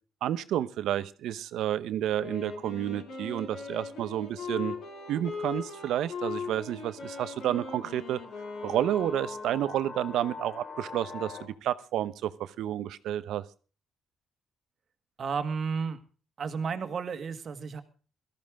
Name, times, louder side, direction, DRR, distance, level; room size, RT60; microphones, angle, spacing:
voice 1, 0.2-4.8 5.1-8.2 8.6-13.4, right 11 dB, 80° right, 14 dB, 0.9 m, -30 dB
Wind instrument woodwind instrument, 2.2-9.8, left 4 dB, 80° left, 5.3 m, -39 dB
sound 1, 2.5-11.5, left 4 dB, 50° left, 3.5 m, -46 dB
voice 2, 15.2-16.0 16.4-17.8, right 5 dB, 50° right, 8 dB, 1.9 m, -32 dB
17.5 x 13.5 x 3.6 m, 0.37 s
cardioid pair, 90°, 0 cm